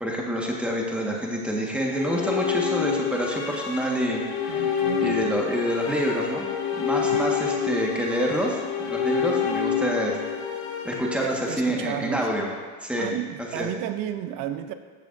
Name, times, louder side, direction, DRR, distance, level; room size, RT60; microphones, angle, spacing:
voice 1, 0.0-4.7 5.0-10.2 10.8-12.5 12.8-13.1 13.5-13.7, equal, 5° right, -2 dB, 1.5 m, -27 dB
sound 1, 1.7-11.9, left 7 dB, 65° left, 2.1 m, -28 dB
voice 2, 4.5-5.2 7.0-7.3 11.2-12.3 12.9-14.7, right 12 dB, 50° right, 10 dB, 0.7 m, -33 dB
16.0 x 6.8 x 2.6 m, 1.5 s
supercardioid pair, 125°, 44 cm